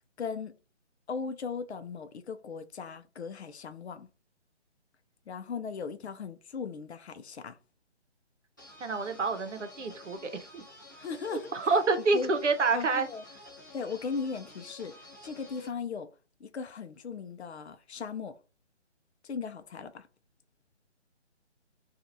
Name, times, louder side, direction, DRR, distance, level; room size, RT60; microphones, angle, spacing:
voice 1, 0.2-0.6 1.1-4.1 5.3-7.6 11.0-11.5 12.1-12.3 12.7-13.2 13.7-16.1 16.4-18.4 19.2-20.1, left 5 dB, 65° left, 0.5 m, -38 dB
sound 1, 8.6-15.7, left 1 dB, 20° left, 0.4 m, -51 dB
voice 2, 8.8-10.6 11.5-13.1, right 3 dB, 80° right, 0.8 m, -28 dB
2.8 x 2.4 x 2.6 m
figure-of-eight pair, 145°, 35 cm